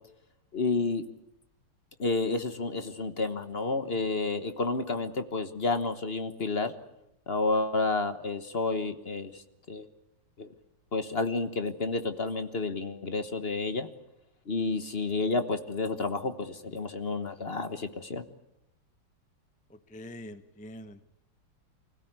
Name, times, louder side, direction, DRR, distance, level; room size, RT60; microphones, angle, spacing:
voice 1, 0.5-1.0 2.0-6.7 7.3-9.4 9.7-9.9 10.4-10.5 10.9-13.9 14.5-18.2, left 3 dB, 35° left, 9 dB, 1.1 m, -30 dB
voice 2, 19.9-21.0, left 1 dB, 10° left, 10 dB, 0.3 m, -44 dB
25.0 x 17.0 x 9.5 m, 0.82 s
omnidirectional pair, 2.3 m